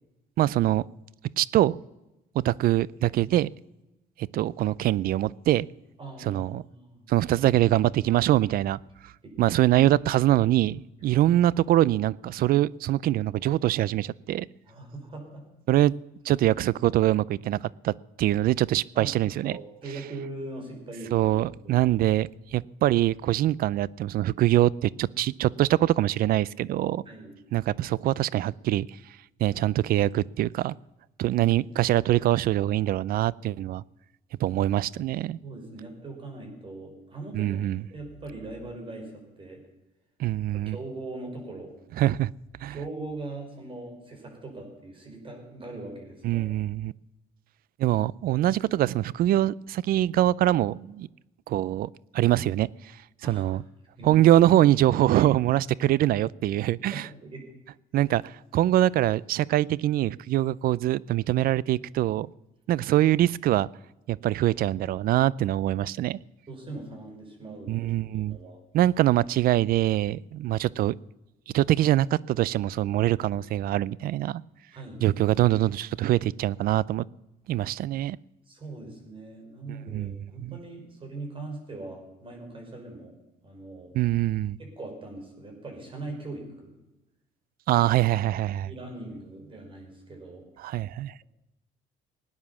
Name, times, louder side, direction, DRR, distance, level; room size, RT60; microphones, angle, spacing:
voice 1, 0.4-0.8 1.4-1.8 2.3-3.5 4.2-5.7 6.2-6.6 7.1-8.8 9.4-14.5 15.7-15.9 16.3-17.6 17.8-19.6 21.1-27.0 27.5-28.9 29.4-30.8 31.2-33.8 34.4-35.4 37.3-37.8 40.2-40.8 42.0-42.3 42.6-42.7 46.2-46.9 47.8-51.1 51.5-51.9 52.1-52.7 53.2-53.6 54.0-57.1 57.9-62.3 62.7-63.7 64.1-66.2 67.7-68.4 68.7-70.9 71.5-74.4 75.0-77.1 77.5-78.2 79.7-80.6 83.9-84.6 87.7-88.7 90.6-91.1, right 14 dB, 60° right, 23 dB, 0.4 m, -24 dB
voice 2, 6.0-7.1 9.2-9.3 11.1-11.2 14.7-15.4 18.9-19.1 19.4-21.3 21.6-21.9 27.1-27.4 35.4-39.6 40.5-41.7 42.7-46.5 53.2-53.5 54.0-54.1 55.2-55.3 56.9-57.5 58.1-58.2 66.5-68.6 74.7-75.1 78.5-83.2 83.4-83.9 84.6-86.8 88.6-90.5, right 2 dB, 30° right, 1 dB, 5.5 m, -41 dB
18.0 x 9.6 x 7.1 m, 0.97 s
cardioid pair, 110°, 17 cm